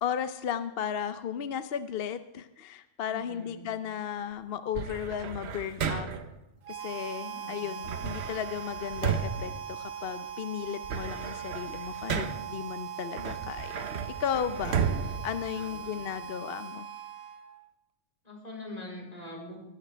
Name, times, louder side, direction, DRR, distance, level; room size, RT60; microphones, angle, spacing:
voice 1, 0.0-6.1 6.7-16.9, left 8 dB, 55° left, 11 dB, 0.8 m, -35 dB
voice 2, 3.1-3.7 7.3-7.7 15.5-16.0 18.2-19.6, left 1 dB, 30° left, -2 dB, 4.2 m, -44 dB
sound 1, 4.7-6.4 7.8-10.3 10.7-12.6 13.1-16.2, right 6 dB, 60° right, 1.1 m, -34 dB
Harmonica, 6.6-17.7, right 9 dB, 90° right, 1.3 m, -40 dB
20.0 x 12.0 x 3.4 m, 0.96 s
omnidirectional pair, 1.3 m